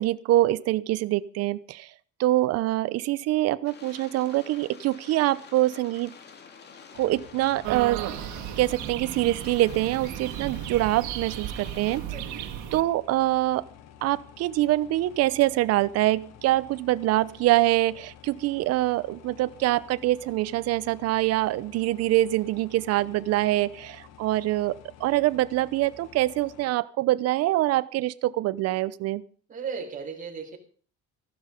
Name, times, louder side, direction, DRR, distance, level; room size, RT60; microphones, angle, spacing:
voice 1, 0.0-1.9 2.2-6.1 6.9-8.0 8.6-12.0 12.7-13.7 14.0-29.2, right 16 dB, 60° right, 16 dB, 0.8 m, -24 dB
sound 1, 3.6-12.0, left 6 dB, 35° left, 2.0 m, -49 dB
sound 2, 6.9-26.7, left 10 dB, 65° left, 1.6 m, -50 dB
sound 3, 7.6-12.8, right 12 dB, 85° right, 1.8 m, -35 dB
voice 2, 12.1-12.5 29.5-30.6, right 5 dB, 25° right, 1 dB, 4.4 m, -36 dB
15.5 x 12.0 x 5.2 m, 0.43 s
cardioid pair, 165°, 29 cm